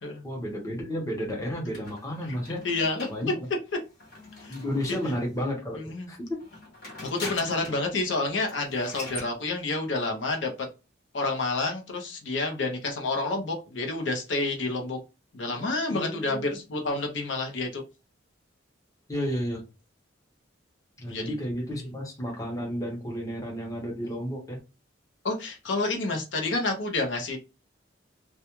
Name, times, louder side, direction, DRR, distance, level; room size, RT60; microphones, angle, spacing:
voice 1, 0.2-2.6 3.1-3.3 4.5-5.8 6.1-6.4 15.9-16.6 19.1-19.6 21.0-24.6, equal, 15° left, -2 dB, 0.8 m, -32 dB
sound 1, 1.7-5.4 6.4-7.9 8.2-8.3 8.5-9.3, left 2 dB, 50° left, 1.1 m, -42 dB
voice 2, 2.6-3.1 4.4-4.5 4.9-5.0 5.7-6.1 7.0-10.5 11.1-15.0 15.3-17.8 21.1-21.4 24.0-24.1 25.2-27.4, left 3 dB, 70° left, 2 dB, 0.6 m, -29 dB
2.3 x 2.2 x 2.9 m, 0.28 s
head